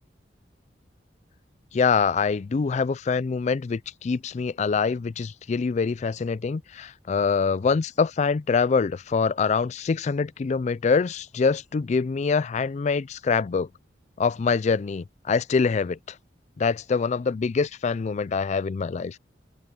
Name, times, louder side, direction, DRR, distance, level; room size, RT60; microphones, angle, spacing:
voice 1, 1.7-13.7 14.2-16.2 16.6-19.2, left 5 dB, 40° left, 0.3 m, -25 dB
open air
head